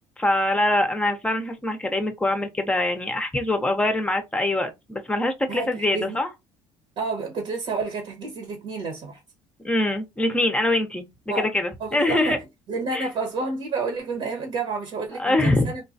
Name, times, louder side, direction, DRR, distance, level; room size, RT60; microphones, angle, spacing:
voice 1, 0.2-6.3 9.6-11.1 11.4-12.4 12.9-13.1 15.2-15.7, left 1 dB, 10° left, 0.7 m, -23 dB
voice 2, 5.5-6.2 7.0-9.2 11.3-11.5 11.8-12.4 12.7-15.8, right 4 dB, 60° right, 1.2 m, -30 dB
3.8 x 2.3 x 2.6 m
cardioid pair, 105°, 11 cm